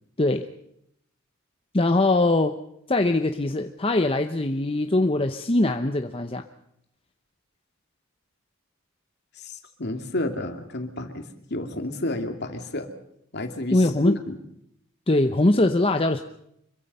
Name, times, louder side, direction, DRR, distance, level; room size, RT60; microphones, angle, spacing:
voice 1, 0.2-0.5 1.7-2.6 2.9-6.4 13.7-14.2 15.1-16.2, left 2 dB, 25° left, 7 dB, 0.8 m, -22 dB
voice 2, 9.8-12.9 13.3-14.4, left 1 dB, 50° left, 6 dB, 2.6 m, -31 dB
25.5 x 23.0 x 5.6 m, 0.74 s
head